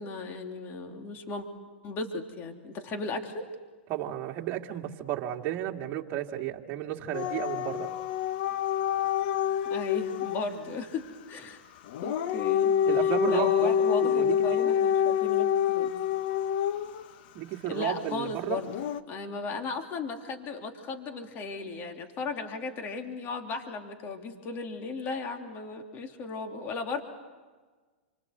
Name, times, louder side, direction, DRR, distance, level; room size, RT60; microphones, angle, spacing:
voice 1, 0.0-1.4 1.8-3.5 9.7-11.6 12.0-15.9 17.7-18.7 19.1-27.0, left 3 dB, 35° left, 4 dB, 3.0 m, -36 dB
voice 2, 3.9-7.9 12.9-14.7 17.3-18.6, right 12 dB, 40° right, 3 dB, 2.2 m, -33 dB
Dog / Siren, 7.1-10.4 11.9-17.0 18.7-19.0, left 9 dB, 60° left, 1.2 m, -27 dB
28.5 x 25.5 x 8.1 m, 1.4 s
hypercardioid pair, 120°, 6 cm